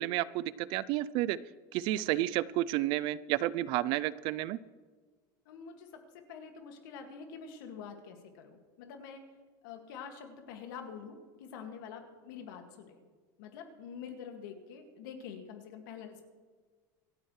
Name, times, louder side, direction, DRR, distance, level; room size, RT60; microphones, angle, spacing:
voice 1, 0.0-1.4 1.7-4.6, right 15 dB, 50° right, 19 dB, 0.4 m, -31 dB
voice 2, 5.5-5.9 6.1-9.2 9.6-13.0 13.4-16.2, left 6 dB, 75° left, 4 dB, 2.0 m, -46 dB
26.5 x 8.9 x 3.2 m, 1.5 s
supercardioid pair, 155°, 11 cm